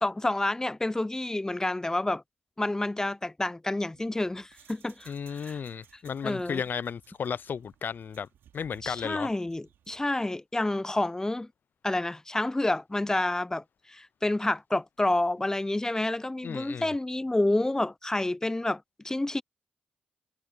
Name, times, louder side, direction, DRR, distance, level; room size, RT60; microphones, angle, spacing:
voice 1, 0.0-2.2 2.6-5.1 5.4-5.6 6.2-6.6 8.8-11.5 11.8-13.6 13.9-19.4, left 2 dB, 15° left, 0.6 m, -29 dB
sound 1, 3.9-10.1, right 10 dB, 75° right, 5.8 m, -59 dB
voice 2, 5.1-8.3 8.5-9.3 16.4-16.9, left 7 dB, 55° left, 0.5 m, -34 dB
supercardioid pair, 45°, 4 cm